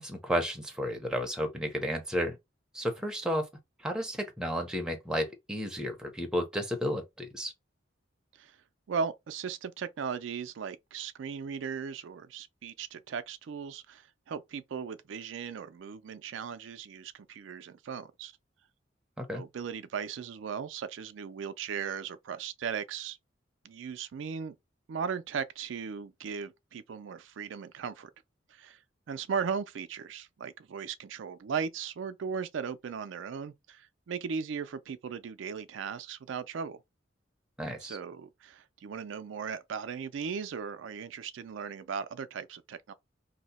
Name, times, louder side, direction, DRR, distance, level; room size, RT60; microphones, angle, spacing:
voice 1, 0.0-2.4 2.7-3.5 3.8-7.5 19.2-19.4 37.6-38.0, equal, 5° right, 0.6 m, -32 dB
voice 2, 8.9-18.3 19.3-23.2 23.6-24.6 24.9-28.1 28.5-28.8 29.1-36.8 37.8-42.9, right 6 dB, 80° right, 0.4 m, -37 dB
2.7 x 2.1 x 4.0 m
head